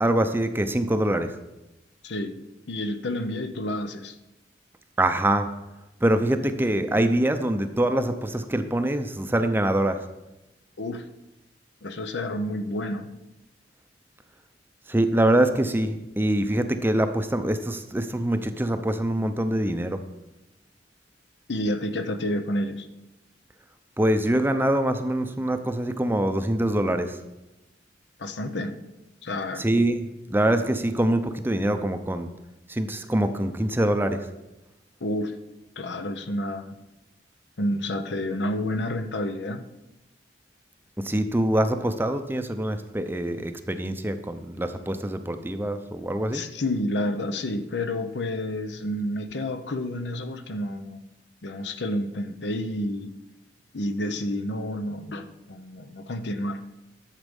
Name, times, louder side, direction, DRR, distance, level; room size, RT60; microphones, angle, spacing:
voice 1, 0.0-1.4 5.0-5.5 6.0-10.0 14.9-20.0 24.0-27.2 29.6-32.3 32.7-34.2 41.0-46.4, right 1 dB, 10° right, 8 dB, 0.6 m, -24 dB
voice 2, 2.0-2.4 2.7-4.2 10.8-11.1 11.8-13.1 21.5-22.9 28.2-28.8 29.2-29.7 35.0-35.4 35.8-36.8 37.6-39.6 46.3-51.1 51.4-53.2 53.7-56.6, left 1 dB, 70° left, 9 dB, 0.8 m, -29 dB
11.5 x 7.4 x 5.3 m, 0.97 s
head